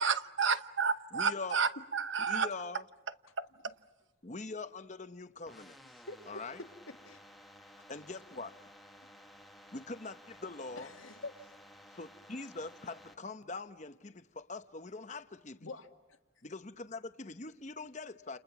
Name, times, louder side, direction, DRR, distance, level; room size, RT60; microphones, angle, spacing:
voice 1, 0.0-2.5 3.4-3.5, right 5 dB, 70° right, 1.0 m, -31 dB
voice 2, 1.1-1.6 2.3-2.8 4.2-5.8 6.3-6.6 7.9-8.5 9.7-10.9 11.9-15.7 16.4-18.4, left 3 dB, 35° left, 0.9 m, -43 dB
sound 1, 5.5-13.1, equal, ahead, 1.4 m, -56 dB
voice 3, 5.8-6.3 6.6-7.2 10.8-11.5 15.6-16.2, left 2 dB, 85° left, 2.1 m, -47 dB
30.0 x 29.0 x 6.0 m
head